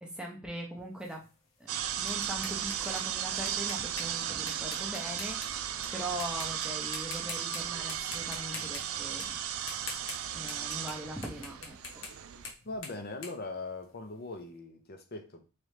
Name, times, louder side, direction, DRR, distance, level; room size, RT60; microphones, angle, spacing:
voice 1, 0.0-1.2 1.6-9.4 10.3-12.1, right 1 dB, 5° right, 0.7 m, -41 dB
sound 1, 1.0-5.9 6.2-6.7 6.9-7.6 7.9-11.0 11.2-14.2, left 4 dB, 60° left, 1.0 m, -44 dB
sound 2, 1.7-12.5, right 9 dB, 75° right, 0.4 m, -36 dB
voice 2, 12.6-15.4, left 2 dB, 45° left, 0.6 m, -40 dB
3.7 x 3.2 x 3.2 m
head